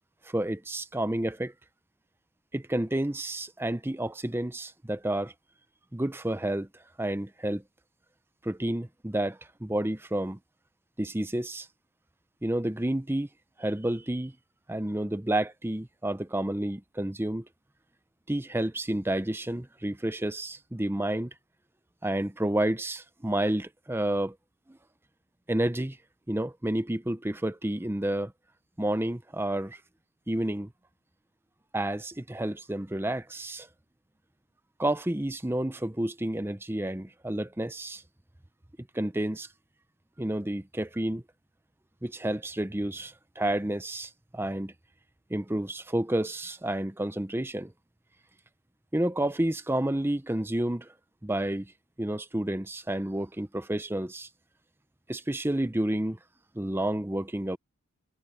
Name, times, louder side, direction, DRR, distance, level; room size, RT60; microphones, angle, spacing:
voice 1, 0.3-1.5 2.5-5.3 5.9-6.7 7.0-7.6 8.4-10.4 11.0-11.7 12.4-13.3 13.6-14.3 14.7-17.4 18.3-21.3 22.0-24.3 25.5-26.0 26.3-28.3 28.8-29.8 30.3-30.7 31.7-33.7 34.8-38.0 38.9-39.5 40.2-41.2 42.0-44.7 45.3-47.7 48.9-50.9 51.2-51.7 52.0-54.3 55.1-56.2 56.6-57.6, right 1 dB, 10° right, 0.7 m, -30 dB
head